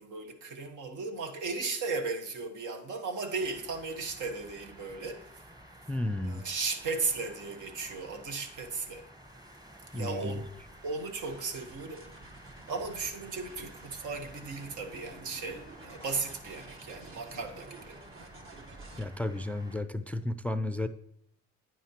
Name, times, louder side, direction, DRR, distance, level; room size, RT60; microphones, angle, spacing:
voice 1, 0.0-5.4 6.2-9.1 9.9-10.5 10.8-12.1 12.7-18.0, right 4 dB, 80° right, 1.3 m, -36 dB
sound 1, 3.4-19.8, right 1 dB, 10° right, 1.0 m, -53 dB
voice 2, 5.9-6.5 9.9-10.4 19.0-20.9, left 1 dB, 5° left, 0.4 m, -33 dB
sound 2, 11.2-19.1, right 3 dB, 45° right, 1.2 m, -51 dB
9.2 x 9.1 x 2.9 m
cardioid pair, 90°, 30 cm